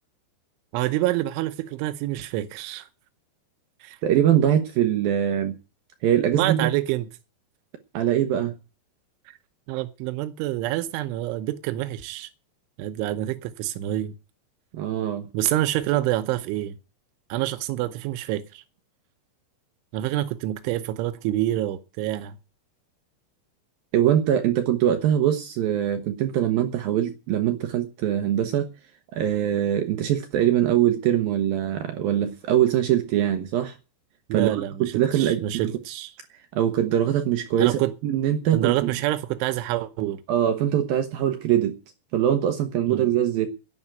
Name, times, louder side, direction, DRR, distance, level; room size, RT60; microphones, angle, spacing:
voice 1, 0.7-2.9 3.8-4.0 6.3-7.1 9.3-9.4 9.7-12.3 12.8-14.2 15.3-16.8 17.3-18.6 19.9-22.4 34.3-36.1 37.6-37.9 38.5-40.2 42.9-43.1, right 14 dB, 90° right, 3.3 m, -27 dB
voice 2, 4.0-5.6 6.0-6.7 7.9-8.5 14.7-15.2 23.9-28.7 29.1-33.8 34.3-35.6 36.5-38.9 40.3-41.8 42.1-43.5, right 11 dB, 70° right, 2.3 m, -22 dB
11.5 x 9.3 x 8.9 m
omnidirectional pair, 5.3 m